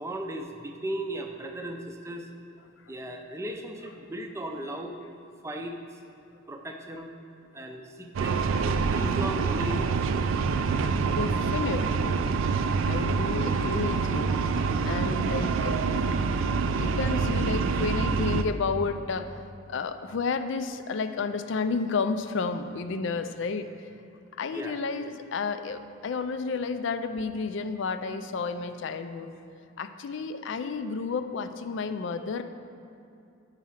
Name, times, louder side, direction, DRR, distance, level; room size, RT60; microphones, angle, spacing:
voice 1, 0.0-2.3 2.9-4.9 5.4-5.8 6.5-7.1 7.5-10.0 24.5-24.8, right 1 dB, 15° right, 3 dB, 0.5 m, -36 dB
sound 1, 8.1-18.4, right 4 dB, 70° right, 0.3 m, -26 dB
voice 2, 11.0-12.2 12.9-14.4 14.8-15.8 16.8-23.7 24.4-29.3 29.8-32.4, left 4 dB, 60° left, 10 dB, 0.4 m, -31 dB
8.3 x 4.9 x 5.7 m, 2.6 s
head